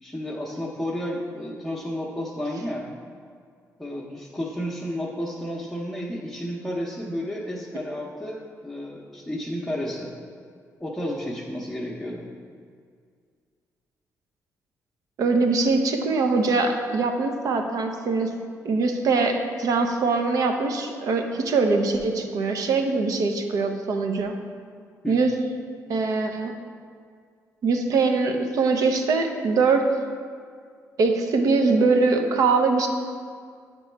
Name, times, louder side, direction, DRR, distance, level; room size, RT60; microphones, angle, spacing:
voice 1, 0.0-2.9 3.8-10.1 10.8-12.2 25.0-25.2, equal, 5° left, -6 dB, 0.7 m, -32 dB
voice 2, 15.2-18.4 18.6-24.4 25.1-25.4 25.9-26.5 27.6-29.9 31.0-32.9, right 4 dB, 70° right, 4 dB, 0.6 m, -22 dB
8.8 x 3.0 x 4.4 m, 2.1 s
cardioid pair, 105°, 6 cm